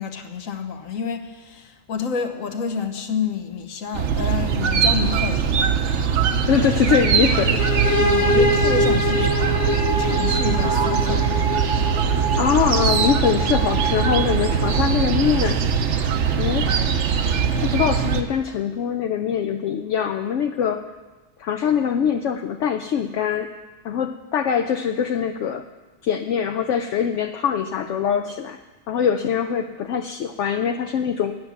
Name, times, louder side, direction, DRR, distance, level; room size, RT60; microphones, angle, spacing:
voice 1, 0.0-5.6 8.0-9.6 10.0-11.3, left 6 dB, 85° left, 5 dB, 1.4 m, -29 dB
sound 1, 3.9-18.2, right 6 dB, 65° right, 1.0 m, -21 dB
voice 2, 6.5-7.6 12.4-15.6 16.4-16.7 17.2-20.8 21.4-23.5 23.8-25.6 26.0-28.6 28.9-31.3, left 8 dB, 70° left, 6 dB, 0.8 m, -23 dB
sound 2, 7.6-15.2, equal, 25° left, 0.4 m, -24 dB
9.5 x 9.2 x 6.9 m, 1.2 s
omnidirectional pair, 1.4 m